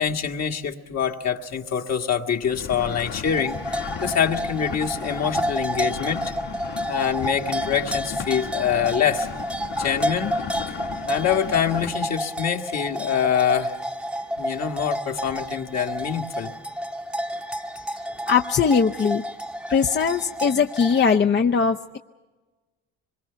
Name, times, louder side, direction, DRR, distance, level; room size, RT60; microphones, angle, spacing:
voice 1, 0.0-6.2 6.9-9.3 9.8-10.4 10.7-10.8 11.1-13.8 14.4-16.5, left 8 dB, 60° left, 3 dB, 1.8 m, -25 dB
sound 1, 2.4-11.9, left 6 dB, 85° left, 2.8 m, -36 dB
sound 2, 3.2-21.2, equal, 5° right, 0.9 m, -30 dB
voice 2, 18.3-19.2 19.7-22.0, left 6 dB, 35° left, 4 dB, 0.7 m, -20 dB
25.0 x 22.0 x 5.7 m, 1.3 s
cardioid pair, 90°, 30 cm